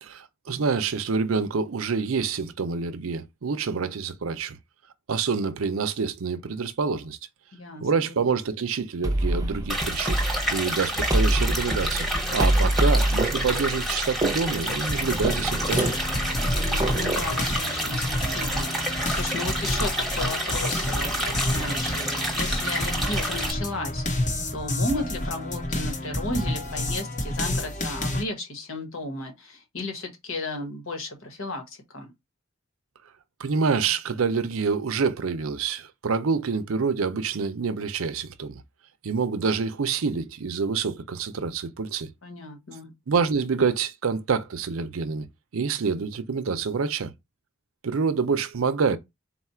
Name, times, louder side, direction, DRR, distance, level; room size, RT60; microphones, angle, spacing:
voice 1, 0.0-4.6 5.1-7.2 7.8-10.2 10.5-15.9 33.4-38.6 39.0-42.1 43.1-45.3 45.5-47.1 47.8-49.0, right 5 dB, 70° right, 0.5 m, -27 dB
voice 2, 7.5-8.2 16.4-32.1 42.2-42.9, left 2 dB, 70° left, 1.3 m, -34 dB
sound 1, 9.0-17.3, right 1 dB, 15° right, 0.7 m, -26 dB
sound 2, 9.7-23.5, right 1 dB, ahead, 1.1 m, -29 dB
sound 3, 14.9-28.2, left 1 dB, 35° left, 0.9 m, -29 dB
4.1 x 2.4 x 4.2 m
head